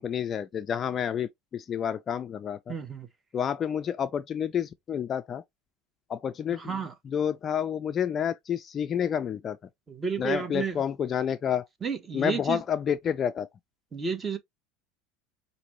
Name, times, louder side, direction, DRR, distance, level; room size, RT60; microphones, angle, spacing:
voice 1, 0.0-2.7 3.3-5.4 6.1-9.6 10.2-11.6 12.1-13.5, left 8 dB, 25° left, 0.3 m, -29 dB
voice 2, 2.7-3.1 6.6-6.9 9.9-10.8 11.8-12.6 13.9-14.4, right 5 dB, 15° right, 0.8 m, -31 dB
5.0 x 2.6 x 3.0 m
supercardioid pair, 150°, 0 cm